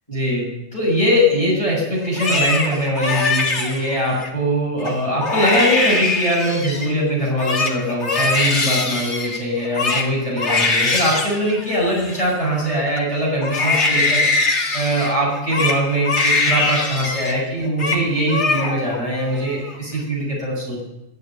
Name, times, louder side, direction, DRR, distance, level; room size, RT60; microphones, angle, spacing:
voice 1, 0.1-0.4 0.7-20.8, equal, 25° left, -5 dB, 6.8 m, -21 dB
Crying sobbing, 2.0-4.3 4.8-4.9 5.2-6.9 7.2-13.0 13.4-17.4 17.6-18.0 18.3-19.0 19.3-20.0, left 3 dB, 55° left, 2.3 m, -22 dB
13.0 x 12.0 x 9.1 m, 0.97 s
omnidirectional pair, 1.4 m